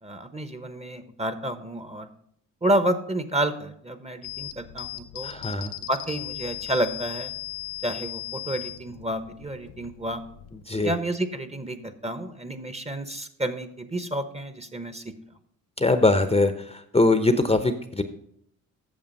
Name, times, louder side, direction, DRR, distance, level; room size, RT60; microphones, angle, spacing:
voice 1, 0.0-2.1 2.6-5.3 5.9-7.3 7.8-10.2 10.8-15.1, right 1 dB, 15° right, 10 dB, 1.0 m, -30 dB
sound 1, 4.2-10.6, left 16 dB, 75° left, 0.8 m, -38 dB
voice 2, 5.2-5.7 10.7-10.9 15.8-16.5 16.9-18.0, left 2 dB, 15° left, 9 dB, 0.8 m, -21 dB
8.7 x 6.8 x 5.3 m, 0.69 s
supercardioid pair, 60°, 38 cm